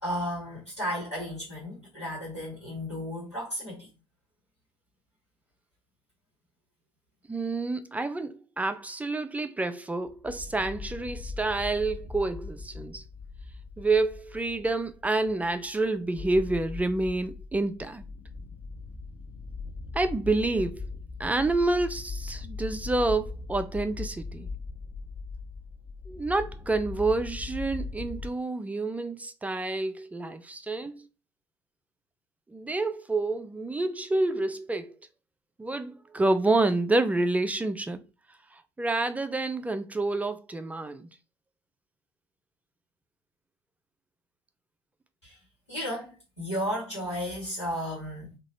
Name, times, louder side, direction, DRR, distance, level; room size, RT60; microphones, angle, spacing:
voice 1, 0.0-3.9 45.2-45.4 45.7-48.4, equal, 90° left, 1.2 m, -34 dB
voice 2, 7.3-13.0 13.8-18.0 19.9-20.8 21.2-24.5 26.1-31.1 32.5-34.9 35.6-38.0 38.5-41.1, right 2 dB, 10° right, 0.3 m, -28 dB
sound 1, 10.1-28.3, left 4 dB, 45° left, 0.7 m, -40 dB
2.9 x 2.3 x 2.8 m
figure-of-eight pair, 60°, 14 cm